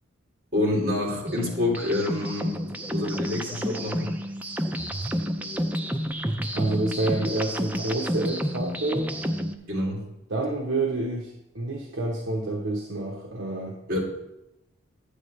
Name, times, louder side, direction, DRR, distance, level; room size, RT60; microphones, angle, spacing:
voice 1, 0.5-2.5 2.9-4.1 9.7-10.0 13.9-14.0, left 2 dB, 45° right, -3 dB, 2.7 m, -27 dB
sound 1, 1.3-9.6, equal, 10° right, 0.4 m, -30 dB
voice 2, 6.5-9.1 10.3-13.8, right 2 dB, 65° right, -1 dB, 1.0 m, -28 dB
10.0 x 8.3 x 3.3 m, 0.90 s
head